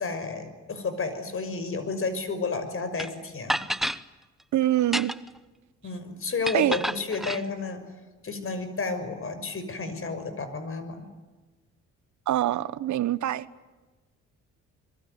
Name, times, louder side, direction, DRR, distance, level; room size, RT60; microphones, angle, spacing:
voice 1, 0.0-3.6 5.8-7.8 8.2-11.1, left 4 dB, 45° left, 10 dB, 6.1 m, -31 dB
sound 1, 3.0-3.1 3.5-4.0 4.8-5.4 6.5-7.4, equal, ahead, 1.0 m, -29 dB
voice 2, 4.5-5.1 6.5-6.7 12.3-13.5, right 13 dB, 70° right, 16 dB, 1.1 m, -24 dB
26.0 x 23.0 x 9.5 m, 1.2 s
cardioid pair, 90°, 30 cm